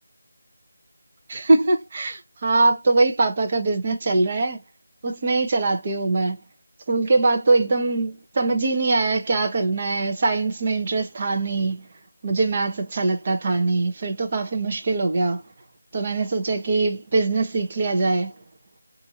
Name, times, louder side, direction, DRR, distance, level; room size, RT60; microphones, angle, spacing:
voice 1, 1.3-4.6 5.0-6.4 6.9-11.8 12.2-15.4 15.9-18.3, right 3 dB, 35° right, 0.9 m, -22 dB
2.7 x 2.7 x 3.9 m
figure-of-eight pair, 160°, 0 cm